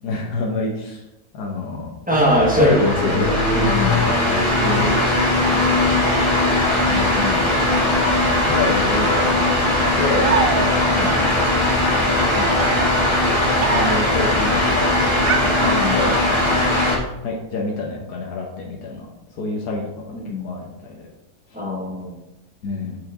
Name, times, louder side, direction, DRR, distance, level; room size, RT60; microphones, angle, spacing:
voice 1, 0.0-1.0 1.3-1.9 2.5-2.7 3.0-3.5 3.9-6.5 6.9-7.4 8.4-11.0 12.4-12.8 13.5-14.9 15.4-16.2 17.2-19.1 19.3-21.1 22.6-23.0, left 2 dB, 75° left, -2 dB, 1.5 m, -28 dB
sound 1, 2.1-17.0, left 1 dB, 20° left, 1.6 m, -19 dB
voice 2, 2.1-4.0 7.1-7.4 10.9-11.1 15.6-16.1 20.1-20.6 21.5-22.2, left 1 dB, 5° right, -3 dB, 1.0 m, -22 dB
sound 2, 10.2-11.0 12.2-14.2 15.2-16.3, right 6 dB, 80° right, 0.5 m, -26 dB
6.1 x 5.5 x 3.6 m, 0.91 s
omnidirectional pair, 1.7 m